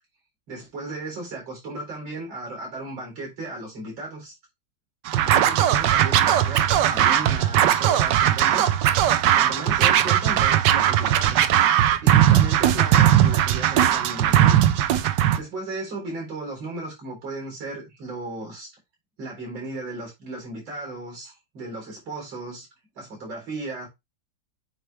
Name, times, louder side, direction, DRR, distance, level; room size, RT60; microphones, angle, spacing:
voice 1, 0.5-4.3 5.2-8.7 9.3-11.5 12.0-14.6 15.3-18.7 19.2-22.7 23.0-23.9, right 2 dB, 90° right, 4.5 m, -35 dB
Scratching (performance technique), 5.1-15.4, right 11 dB, 70° right, 1.2 m, -19 dB
8.7 x 3.4 x 3.3 m
omnidirectional pair, 2.1 m